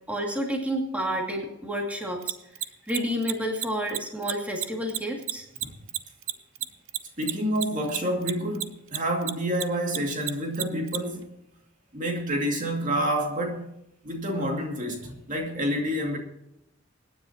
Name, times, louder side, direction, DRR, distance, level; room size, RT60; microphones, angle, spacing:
voice 1, 0.1-2.3 2.9-5.5 15.0-15.1, equal, 5° right, 2.4 m, -30 dB
Mechanisms, 2.2-9.0 9.2-11.0, right 13 dB, 90° right, 0.8 m, -29 dB
voice 2, 7.2-11.3 11.9-13.7 14.0-16.2, equal, 40° right, 2.5 m, -28 dB
25.5 x 10.0 x 2.9 m
head